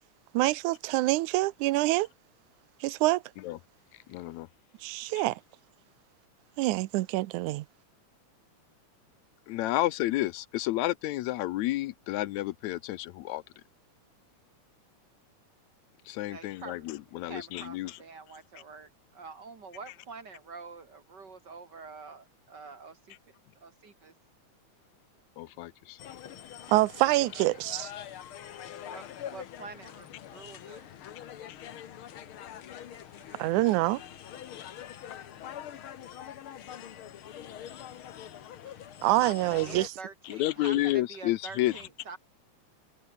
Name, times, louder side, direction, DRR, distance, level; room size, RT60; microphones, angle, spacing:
voice 1, 0.3-2.1 2.8-3.2 4.8-5.4 6.6-7.7 26.7-27.9 33.4-34.0 39.0-39.9, right 18 dB, 85° right, 2.1 m, -26 dB
voice 2, 4.1-4.5 5.2-5.3 9.5-13.4 16.1-18.0 25.4-26.0 31.5-31.7 40.2-41.8, left 16 dB, 80° left, 1.9 m, -31 dB
voice 3, 16.3-17.0 17.2-23.1 23.6-24.1 28.8-29.0 29.3-30.9 39.0-42.2, right 4 dB, 35° right, 2.9 m, -46 dB
sound 1, 26.0-39.9, left 10 dB, 55° left, 1.7 m, -44 dB
omnidirectional pair, 3.5 m